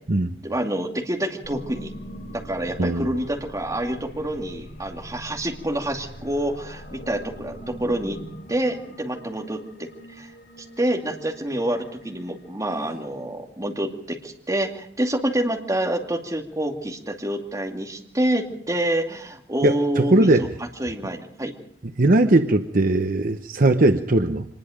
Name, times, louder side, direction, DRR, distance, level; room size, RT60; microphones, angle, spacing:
voice 1, 0.4-1.9 2.3-8.2 8.5-9.9 10.2-10.3 10.8-20.3 20.8-21.5, right 1 dB, 20° right, 2 dB, 2.5 m, -27 dB
sound 1, 1.4-13.3, equal, 85° left, 7.3 m, -42 dB
voice 2, 19.6-20.5 22.0-24.4, right 2 dB, 50° right, 8 dB, 0.9 m, -19 dB
25.0 x 20.5 x 5.1 m, 0.68 s
head